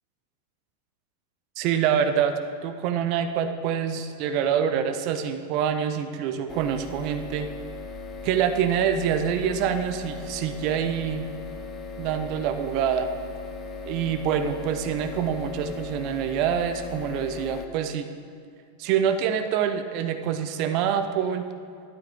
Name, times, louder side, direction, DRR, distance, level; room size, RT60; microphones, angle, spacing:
voice 1, 1.6-2.3 2.6-7.5 8.2-11.2 12.0-13.1 13.9-18.1 18.8-21.4, right 8 dB, 40° right, 8 dB, 0.7 m, -26 dB
sound 1, 6.5-17.7, left 4 dB, 25° left, 1.0 m, -38 dB
12.5 x 12.0 x 3.7 m, 2.3 s
figure-of-eight pair, 90°, 0 cm